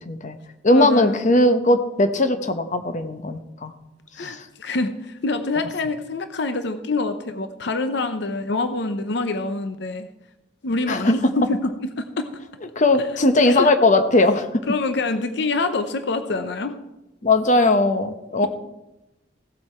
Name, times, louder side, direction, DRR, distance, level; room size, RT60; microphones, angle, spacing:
voice 1, 0.1-0.4 0.6-3.7 4.2-4.4 10.9-11.1 12.8-14.5 17.2-18.5, left 2 dB, 40° left, 9 dB, 0.9 m, -19 dB
voice 2, 0.7-1.2 4.2-10.1 10.6-12.3 13.5-13.7 14.7-16.8, left 3 dB, 65° left, 9 dB, 0.7 m, -26 dB
16.0 x 7.8 x 4.4 m, 0.94 s
head